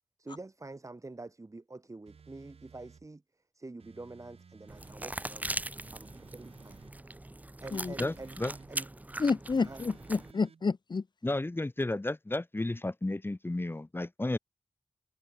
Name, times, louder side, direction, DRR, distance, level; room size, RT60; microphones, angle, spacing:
voice 1, 0.2-3.2 3.5-6.8 7.6-8.9 9.6-9.9, right 2 dB, 30° right, 5.0 m, -47 dB
sound 1, 2.1-3.1 3.8-5.0 5.7-7.0 7.6-8.7 9.5-10.6, right 6 dB, 80° right, 3.5 m, -57 dB
sound 2, 4.7-10.3, right 1 dB, 15° right, 0.8 m, -40 dB
voice 2, 8.0-8.5 11.2-14.4, left 2 dB, 20° left, 1.9 m, -33 dB
voice 3, 9.2-11.0, left 4 dB, 50° left, 1.0 m, -29 dB
wide cardioid pair, 85°, 10 cm